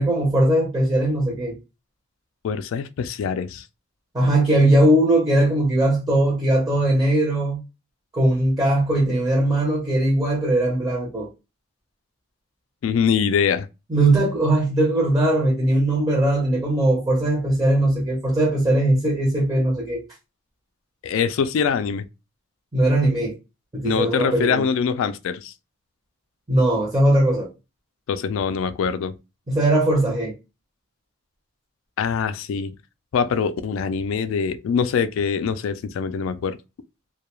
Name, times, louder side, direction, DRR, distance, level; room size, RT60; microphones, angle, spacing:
voice 1, 0.0-1.6 4.1-7.6 8.1-11.3 13.9-20.0 22.7-23.3 23.7-24.6 26.5-27.5 29.5-30.3, right 1 dB, 20° right, 0.6 m, -20 dB
voice 2, 2.4-3.6 12.8-13.7 21.0-22.1 23.8-25.5 28.1-29.2 32.0-32.7 33.1-36.6, left 6 dB, 70° left, 0.3 m, -23 dB
2.2 x 2.2 x 2.9 m
head